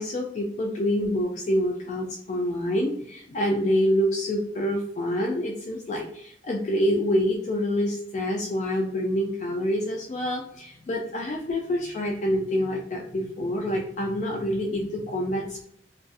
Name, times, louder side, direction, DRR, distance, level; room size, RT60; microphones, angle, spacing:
voice 1, 0.0-15.6, equal, 40° left, -1 dB, 0.3 m, -27 dB
2.6 x 2.3 x 2.4 m, 0.67 s
head